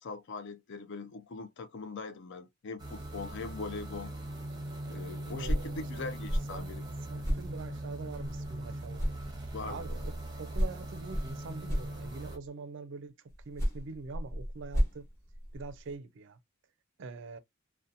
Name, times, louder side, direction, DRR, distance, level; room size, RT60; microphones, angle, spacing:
voice 1, 0.0-4.1 4.8-6.8 9.5-10.0, left 4 dB, 55° left, 0.4 m, -41 dB
sound 1, 2.8-12.4, right 1 dB, 20° right, 0.7 m, -41 dB
sound 2, 5.4-8.6 8.9-12.5 13.3-16.0, equal, 15° left, 1.0 m, -35 dB
voice 2, 5.4-6.1 6.5-10.0 10.4-13.1 13.5-15.1 15.5-16.4 17.0-17.4, right 4 dB, 60° right, 0.4 m, -44 dB
2.7 x 2.1 x 2.5 m
head